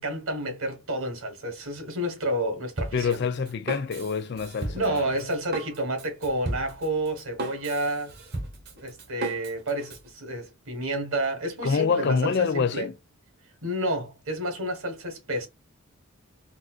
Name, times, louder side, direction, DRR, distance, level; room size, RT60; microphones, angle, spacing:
voice 1, 0.0-3.2 4.7-8.1 8.7-12.9 13.6-15.5, right 1 dB, 70° right, 1.3 m, -30 dB
Drum kit, 2.8-10.1, right 2 dB, 45° right, 0.9 m, -36 dB
voice 2, 2.9-5.1 11.6-12.9, left 5 dB, 50° left, 0.4 m, -26 dB
3.9 x 2.5 x 2.3 m
head